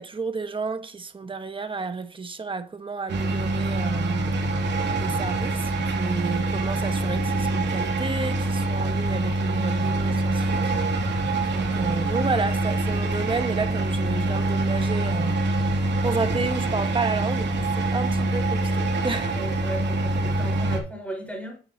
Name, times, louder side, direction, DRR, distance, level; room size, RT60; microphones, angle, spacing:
voice 1, 0.0-4.3 5.0-11.2 11.5-19.4, right 4 dB, 25° right, 1.2 m, -31 dB
sound 1, 3.1-20.8, right 2 dB, 60° right, 2.5 m, -25 dB
voice 2, 19.3-21.6, right 1 dB, 5° left, 4.3 m, -35 dB
9.1 x 7.8 x 2.8 m
cardioid pair, 90°, 20 cm